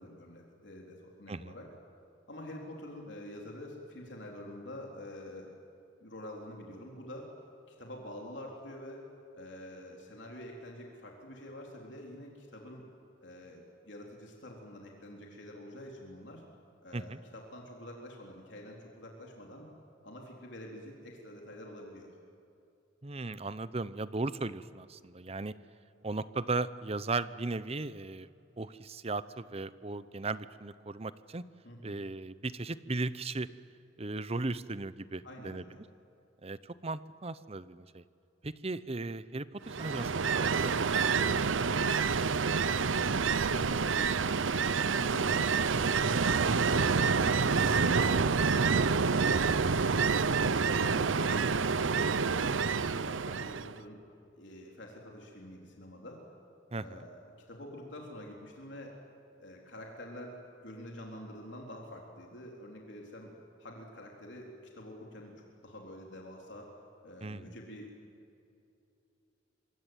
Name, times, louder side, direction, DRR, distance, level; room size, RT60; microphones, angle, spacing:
voice 1, 0.0-1.7 2.3-5.5 6.0-7.3 7.7-9.0 9.3-12.8 13.2-16.4 16.8-19.7 20.0-22.1 31.6-32.0 35.2-35.8 42.7-46.0 46.4-47.7 48.1-49.9 50.4-54.0 54.3-56.3 56.8-57.2 57.5-59.0 59.4-60.4 60.6-63.3 63.6-67.9, left 1 dB, 60° left, -1 dB, 4.1 m, -47 dB
voice 2, 23.0-25.5 26.0-28.3 28.6-31.4 31.8-33.5 34.0-35.6 36.4-38.0 38.4-41.7 44.9-45.1 56.7-57.0 67.2-67.5, right 3 dB, 30° right, 15 dB, 0.8 m, -37 dB
Ocean, 39.7-53.8, right 5 dB, 75° right, 0.7 m, -28 dB
26.5 x 23.0 x 9.2 m, 2.7 s
head